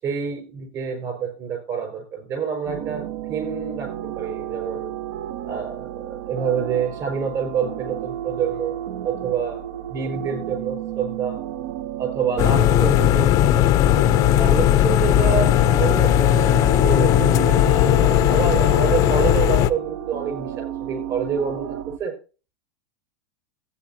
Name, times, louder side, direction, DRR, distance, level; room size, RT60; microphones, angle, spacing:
voice 1, 0.0-3.0 3.3-3.9 4.1-4.9 5.4-8.8 9.0-9.6 9.9-11.4 12.0-13.7 14.3-22.1, right 6 dB, 35° right, 6 dB, 5.0 m, -27 dB
sound 1, 2.7-22.0, right 11 dB, 65° right, 0.7 m, -32 dB
sound 2, 12.4-19.7, left 13 dB, 40° left, 0.5 m, -17 dB
15.5 x 8.6 x 2.7 m, 0.34 s
supercardioid pair, 135°, 9 cm